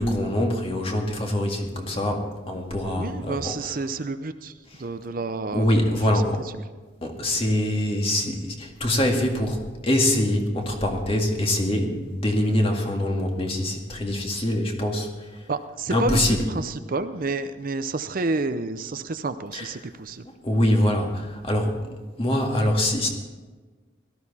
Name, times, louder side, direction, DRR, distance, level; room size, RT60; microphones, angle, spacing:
voice 1, 0.0-3.8 4.7-4.8 5.5-6.4 7.0-15.3 15.9-16.5 19.5-19.7 20.4-21.8 22.2-23.1, left 1 dB, 30° left, 1 dB, 2.0 m, -24 dB
voice 2, 3.0-4.5 4.8-6.0 15.5-20.2, right 3 dB, 45° right, 10 dB, 0.6 m, -30 dB
17.5 x 13.0 x 4.2 m, 1.3 s
head